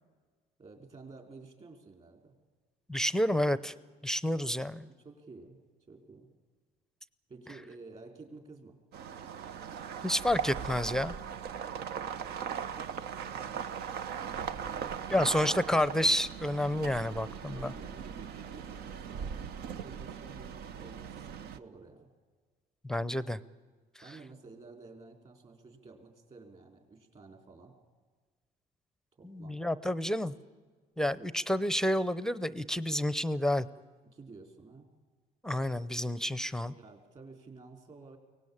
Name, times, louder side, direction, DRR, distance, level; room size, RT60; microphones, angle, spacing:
voice 1, 0.6-2.4 4.8-5.6 5.9-6.3 7.3-8.8 12.2-13.6 14.6-15.7 17.5-19.5 19.8-22.1 24.0-27.7 29.2-29.6 34.1-34.9 36.7-38.2, right 3 dB, 40° right, 4 dB, 4.5 m, -52 dB
voice 2, 2.9-3.7 4.0-4.9 10.0-11.1 15.1-17.7 22.8-23.4 29.2-30.3 31.0-33.7 35.4-36.7, left 1 dB, 5° left, 16 dB, 0.7 m, -29 dB
sound 1, 8.9-21.6, right 7 dB, 70° right, 1.0 m, -39 dB
23.5 x 18.0 x 8.8 m, 1.4 s
cardioid pair, 110°, 17 cm